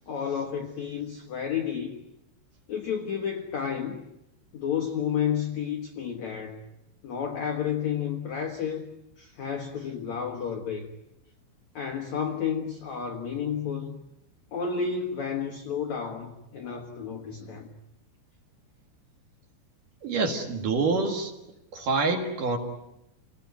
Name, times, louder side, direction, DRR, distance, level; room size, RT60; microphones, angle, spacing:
voice 1, 0.1-2.0 2.7-4.0 4.5-6.7 7.0-8.8 9.2-10.9 11.7-14.0 14.5-17.8, left 7 dB, 90° left, 3 dB, 1.5 m, -31 dB
voice 2, 20.0-21.3 21.7-22.6, right 3 dB, 55° right, 4 dB, 2.6 m, -26 dB
28.5 x 18.5 x 9.3 m, 0.90 s
omnidirectional pair, 5.6 m